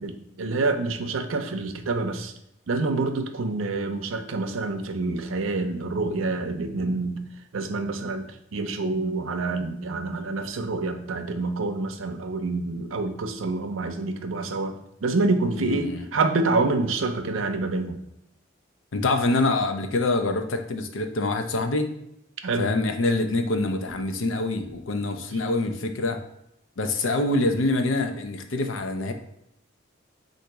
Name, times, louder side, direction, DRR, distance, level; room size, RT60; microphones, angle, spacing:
voice 1, 0.0-2.3 2.7-7.2 7.5-18.0 22.4-22.7, right 3 dB, 85° right, 7 dB, 0.5 m, -27 dB
voice 2, 15.6-16.1 18.9-21.9 22.6-26.2 26.8-29.1, left 2 dB, 75° left, 7 dB, 0.5 m, -25 dB
3.9 x 2.6 x 4.6 m, 0.82 s
head